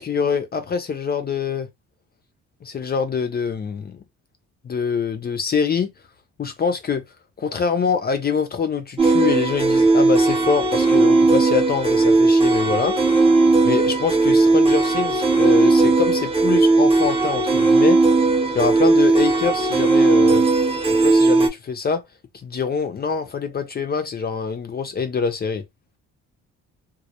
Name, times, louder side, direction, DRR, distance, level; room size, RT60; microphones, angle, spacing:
voice 1, 0.0-1.7 2.6-4.0 4.6-5.9 6.4-7.0 7.4-13.0 13.6-18.0 18.6-20.4 21.0-22.0 22.4-25.6, left 5 dB, 35° left, 0.4 m, -24 dB
Sad Horror Music, 9.0-21.5, right 3 dB, 20° right, 0.7 m, -17 dB
2.1 x 2.1 x 2.7 m
cardioid pair, 90°, 30 cm